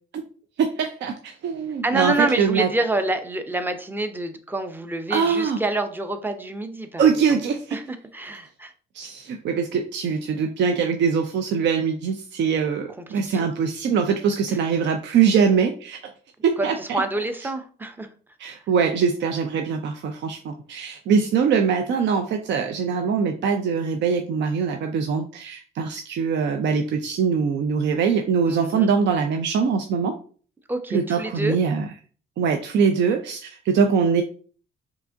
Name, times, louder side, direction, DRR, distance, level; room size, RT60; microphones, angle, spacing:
voice 1, 0.6-2.7 5.1-5.6 7.0-7.8 8.9-16.0 16.4-17.0 18.4-30.2 30.9-31.9 32.4-34.2, right 6 dB, 65° right, 5 dB, 0.5 m, -22 dB
voice 2, 1.8-7.1 7.7-8.7 13.3-13.4 14.5-14.6 16.6-18.1 28.5-28.9 30.7-31.6, right 2 dB, 10° right, 8 dB, 0.5 m, -27 dB
4.6 x 2.8 x 2.6 m, 0.42 s
cardioid pair, 90°, 20 cm